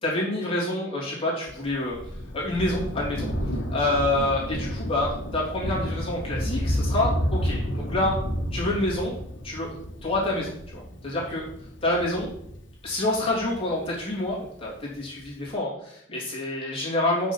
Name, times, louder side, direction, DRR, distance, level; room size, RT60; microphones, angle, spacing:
voice 1, 0.0-2.0 2.3-3.3 3.7-8.2 8.5-9.1 9.4-11.4 11.8-12.3 12.8-17.3, left 1 dB, 25° left, -6 dB, 3.2 m, -27 dB
Thunder, 1.5-14.3 15.2-15.3, equal, 60° left, 1.5 m, -31 dB
6.5 x 6.2 x 7.3 m, 0.72 s
head